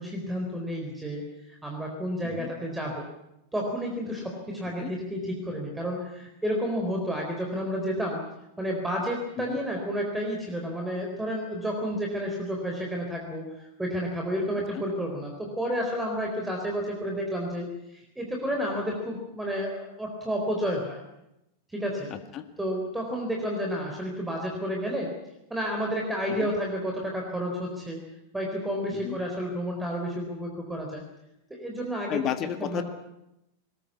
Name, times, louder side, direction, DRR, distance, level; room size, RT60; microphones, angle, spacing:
voice 1, 0.0-3.0 3.5-8.2 8.6-17.7 17.9-21.0 21.7-22.1 22.6-25.1 25.5-28.0 28.3-31.0 31.5-32.2 32.6-32.8, equal, 5° right, 1 dB, 4.2 m, -31 dB
voice 2, 22.1-22.5 26.3-26.5 28.9-29.2 32.1-32.8, left 11 dB, 35° left, 10 dB, 1.8 m, -33 dB
21.5 x 20.0 x 8.5 m, 0.87 s
figure-of-eight pair, 90°, 0 cm